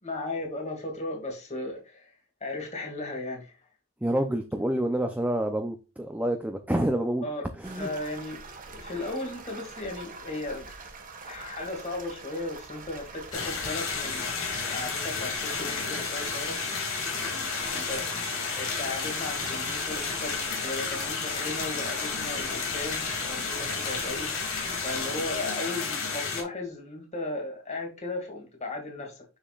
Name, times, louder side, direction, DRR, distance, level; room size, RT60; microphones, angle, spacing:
voice 1, 0.0-2.1 2.4-3.6 7.2-7.4 7.7-10.7 11.3-14.3 14.6-16.6 17.6-24.3 24.8-29.2, left 2 dB, 35° left, 2.5 m, -36 dB
voice 2, 4.0-7.2 7.6-7.9, right 1 dB, 5° right, 0.6 m, -28 dB
sound 1, 7.6-25.4, right 4 dB, 40° right, 1.5 m, -44 dB
sound 2, 13.3-26.4, left 5 dB, 75° left, 2.7 m, -31 dB
7.2 x 7.0 x 2.5 m
head